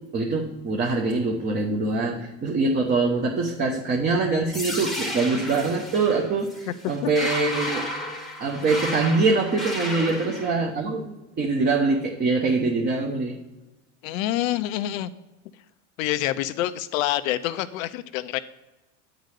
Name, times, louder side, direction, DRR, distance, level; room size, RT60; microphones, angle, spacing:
voice 1, 0.1-7.8 8.4-13.4, right 3 dB, 25° right, -1 dB, 1.0 m, -24 dB
sound 1, 4.5-10.5, left 1 dB, ahead, 1.1 m, -33 dB
voice 2, 14.0-15.1 16.0-18.4, left 14 dB, 80° left, 12 dB, 0.6 m, -27 dB
9.5 x 4.0 x 6.4 m, 1.0 s
supercardioid pair, 135°, 39 cm